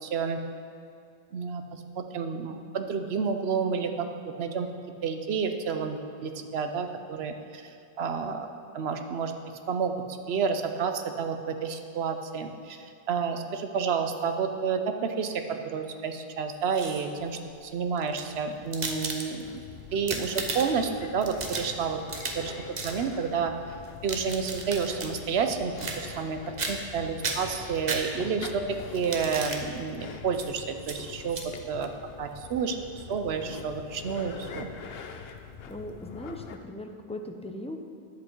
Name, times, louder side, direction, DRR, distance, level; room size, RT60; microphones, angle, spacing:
voice 1, 0.0-0.4 1.3-4.7 5.0-7.6 8.0-8.5 8.7-9.3 9.7-9.9 10.3-19.6 19.9-22.0 22.3-22.5 22.8-23.5 24.0-31.4 31.7-31.9 32.2-34.7, right 6 dB, 75° right, 6 dB, 1.0 m, -30 dB
sound 1, 16.5-17.2 18.0-19.6 19.9-20.9 21.2-22.5 22.7-23.0 23.8-25.1 25.8-26.3 26.6-26.9 27.2-28.4 28.9-29.6 30.3-30.5 30.8-31.0 31.3-31.5, right 3 dB, 45° right, 0.9 m, -35 dB
sound 2, 19.4-36.6, left 6 dB, 70° left, 0.9 m, -44 dB
voice 2, 35.7-37.8, left 1 dB, 10° left, 4 dB, 0.3 m, -39 dB
10.5 x 7.7 x 4.5 m, 2.4 s
omnidirectional pair, 1.1 m